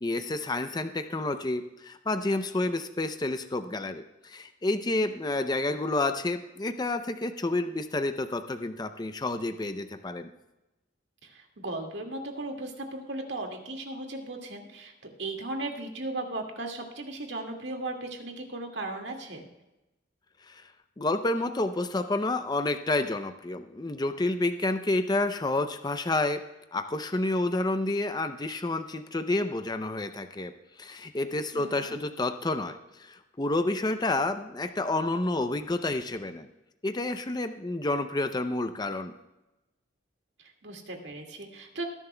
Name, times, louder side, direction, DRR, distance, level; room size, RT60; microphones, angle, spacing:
voice 1, 0.0-10.3 20.5-20.7 21.0-26.4 26.7-30.5 30.8-36.5 36.8-39.1, left 2 dB, 20° left, 8 dB, 0.5 m, -29 dB
voice 2, 11.2-19.5 31.5-32.0 40.6-41.8, right 2 dB, 65° right, 2 dB, 2.0 m, -37 dB
19.5 x 11.0 x 2.2 m, 0.98 s
head